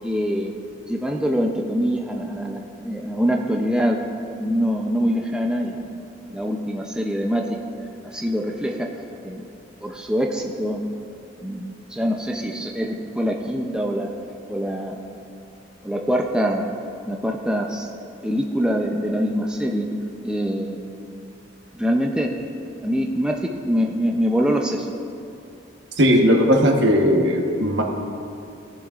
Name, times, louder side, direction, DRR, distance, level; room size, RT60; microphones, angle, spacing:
voice 1, 0.0-0.5 0.9-4.0 4.4-7.6 8.0-8.9 9.2-9.4 9.8-10.9 11.4-14.1 14.5-15.0 15.8-16.7 17.1-17.9 18.2-19.9 20.2-20.8 21.7-22.3 22.8-24.9, equal, 5° right, 1 dB, 0.4 m, -24 dB
voice 2, 26.0-27.8, equal, 65° right, 1 dB, 1.1 m, -17 dB
17.0 x 7.3 x 2.4 m, 2.6 s
head